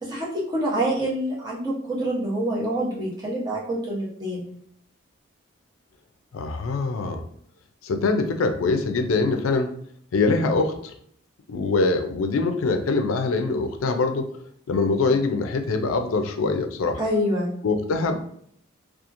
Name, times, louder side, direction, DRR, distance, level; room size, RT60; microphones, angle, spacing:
voice 1, 0.0-4.4 17.0-17.5, right 1 dB, 20° right, -4 dB, 0.7 m, -26 dB
voice 2, 6.3-7.2 7.8-9.7 10.1-10.9 11.5-14.3 14.7-17.0 17.6-18.3, left 3 dB, 85° left, 6 dB, 0.4 m, -23 dB
2.8 x 2.4 x 2.5 m, 0.65 s
head